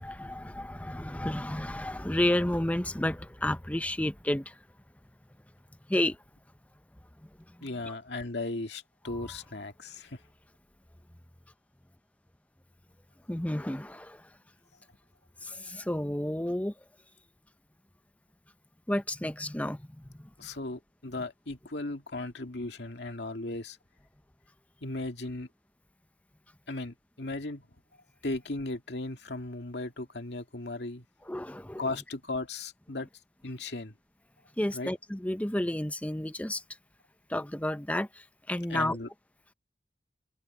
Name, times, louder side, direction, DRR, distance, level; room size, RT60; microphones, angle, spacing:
voice 1, 0.0-4.6 5.9-6.2 7.8-7.9 9.1-9.2 13.3-14.2 15.4-16.7 18.9-20.5 31.3-31.9 34.6-36.6 37.3-39.0, left 1 dB, 10° left, 0.7 m, -31 dB
voice 2, 7.6-10.2 20.4-23.8 24.8-25.5 26.7-27.7 28.2-31.0 31.8-33.1 33.4-33.9 34.7-34.9 38.7-39.1, left 2 dB, 75° left, 2.1 m, -36 dB
head